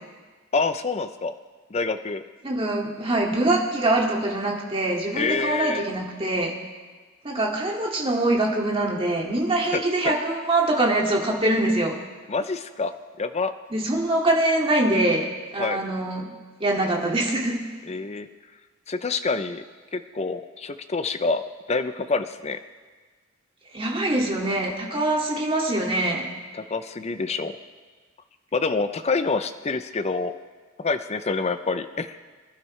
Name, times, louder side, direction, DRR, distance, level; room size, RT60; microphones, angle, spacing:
voice 1, 0.5-1.3 1.7-2.2 5.1-5.8 9.7-9.8 12.3-12.9 13.2-13.5 15.6-15.8 17.9-18.3 18.9-19.6 19.9-21.4 21.7-22.6 26.5-27.5 28.5-30.3 30.8-32.2, left 4 dB, 30° left, 10 dB, 0.5 m, -26 dB
voice 2, 2.4-6.5 7.2-11.9 13.7-15.2 15.5-16.3 16.6-17.6 23.7-26.3, right 2 dB, 25° right, -2 dB, 2.2 m, -23 dB
25.0 x 12.0 x 3.3 m, 1.4 s
head